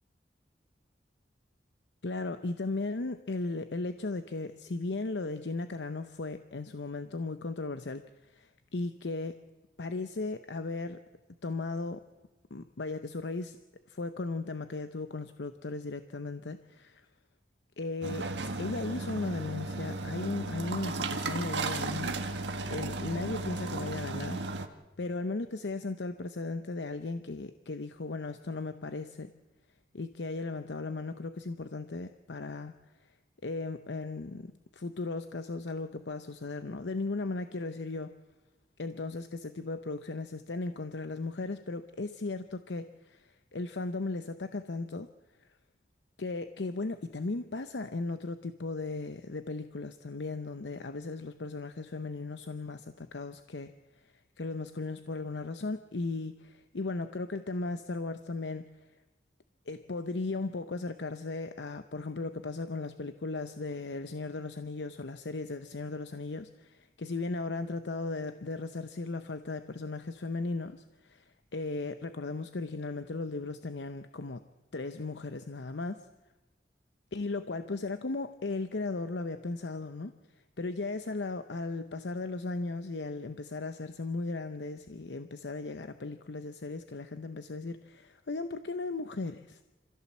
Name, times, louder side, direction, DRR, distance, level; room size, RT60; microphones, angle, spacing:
voice 1, 2.0-9.4 9.8-11.0 11.4-12.0 12.5-13.6 13.9-17.1 17.8-24.5 25.0-29.3 29.9-32.7 33.4-38.1 38.8-45.1 45.4-45.5 46.2-53.7 54.0-58.7 59.7-74.4 74.7-76.1 77.1-80.1 80.6-89.6, left 3 dB, 85° left, 10 dB, 0.8 m, -36 dB
sound 1, 18.0-24.7, right 3 dB, 85° right, 1.5 m, -35 dB
26.0 x 16.0 x 7.4 m, 1.1 s
head